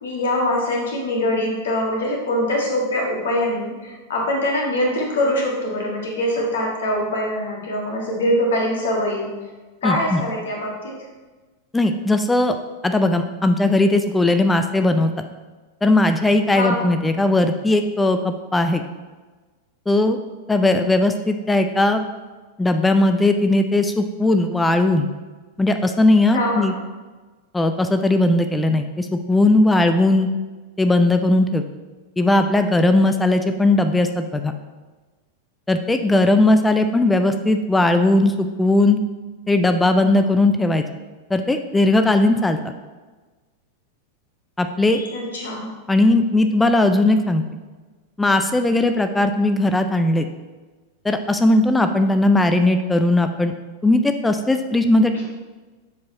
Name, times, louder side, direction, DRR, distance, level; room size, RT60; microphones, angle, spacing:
voice 1, 0.0-9.3 9.8-11.0 16.5-16.9 26.3-26.7 44.9-45.7, left 1 dB, 60° left, -1 dB, 1.7 m, -23 dB
voice 2, 9.8-10.2 11.7-12.6 12.8-15.2 15.8-18.8 19.9-20.2 20.5-22.0 22.6-25.1 25.6-26.7 27.5-30.3 30.8-31.6 32.2-34.5 35.7-39.0 39.5-40.8 41.3-42.6 44.6-45.0 45.9-47.4 48.2-50.3 51.0-53.5 53.8-55.3, left 2 dB, 10° left, 7 dB, 0.4 m, -18 dB
7.2 x 4.6 x 4.1 m, 1.3 s
figure-of-eight pair, 90°, 0 cm